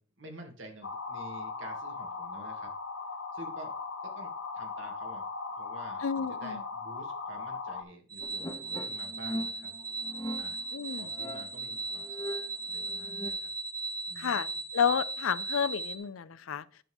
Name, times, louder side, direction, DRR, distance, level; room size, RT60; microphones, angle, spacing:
voice 1, 0.0-2.7 3.3-3.7 4.0-5.3 5.5-9.7 10.4-10.6 11.0-12.2 12.7-13.5 14.1-14.6, right 1 dB, 70° right, 2.0 m, -49 dB
sound 1, 0.8-7.8, left 4 dB, 70° left, 1.3 m, -38 dB
voice 2, 6.0-6.6 10.7-11.1 14.2-14.5 14.7-16.6, left 7 dB, 90° left, 0.5 m, -30 dB
sound 2, 8.1-16.0, right 3 dB, 20° right, 1.1 m, -37 dB
sound 3, 8.2-13.3, equal, 20° left, 0.9 m, -40 dB
10.0 x 3.5 x 7.0 m
head